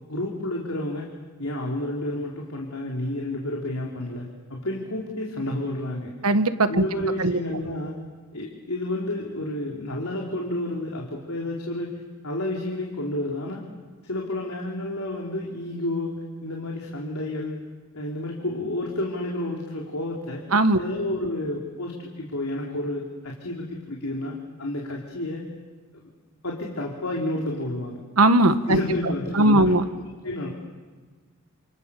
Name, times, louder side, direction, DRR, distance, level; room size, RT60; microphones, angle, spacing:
voice 1, 0.1-1.1 1.4-6.1 6.7-8.0 8.3-13.6 14.0-17.6 17.9-20.4 20.8-25.5 25.9-26.0 26.4-28.0 28.7-30.5, left 1 dB, 85° left, -1 dB, 3.4 m, -30 dB
voice 2, 6.2-6.8 7.2-7.4 20.5-20.8 28.2-28.8 29.3-29.8, right 2 dB, 85° right, 10 dB, 1.4 m, -18 dB
29.5 x 27.5 x 6.9 m, 1.4 s
head